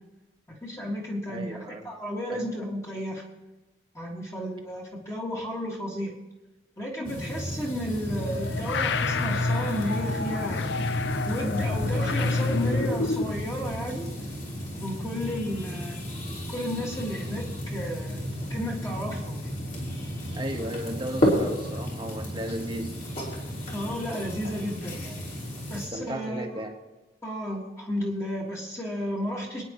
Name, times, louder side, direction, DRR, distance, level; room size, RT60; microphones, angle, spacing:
voice 1, 0.5-1.6 1.8-3.2 3.9-6.1 6.8-10.7 11.2-14.1 14.8-16.0 16.5-18.2 18.5-19.5 23.7-25.2 25.7-26.6 27.2-29.6, equal, 15° left, -2 dB, 1.9 m, -33 dB
voice 2, 1.3-1.9 2.3-2.5 20.3-23.0 25.7-26.8, right 1 dB, 25° right, 3 dB, 1.2 m, -35 dB
sound 1, 7.0-25.9, equal, 45° left, 3.7 m, -33 dB
sound 2, 8.0-13.5, left 3 dB, 70° left, 0.5 m, -28 dB
27.0 x 9.6 x 3.0 m, 1.1 s
head